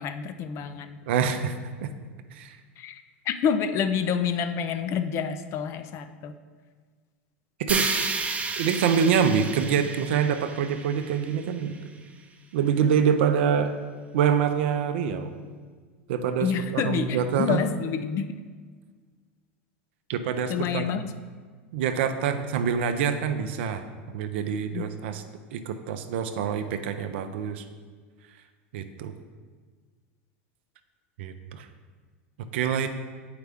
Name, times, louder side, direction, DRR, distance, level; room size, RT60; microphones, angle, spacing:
voice 1, 0.0-1.0 2.8-6.3 16.4-18.4 20.5-21.1 24.7-24.8, left 7 dB, 45° left, 9 dB, 0.5 m, -28 dB
voice 2, 1.1-1.5 1.8-1.9 2.3-2.6 7.6-7.9 8.6-11.7 12.5-13.8 14.1-15.3 16.1-17.6 20.1-21.1 21.7-23.8 24.1-25.2 25.5-27.6 28.7-29.1 31.2-31.7 32.5-32.9, right 7 dB, 70° right, 8 dB, 0.6 m, -25 dB
sound 1, 7.7-11.8, right 4 dB, 20° right, 0.7 m, -31 dB
8.0 x 4.9 x 3.5 m, 1.5 s
hypercardioid pair, 90°, 6 cm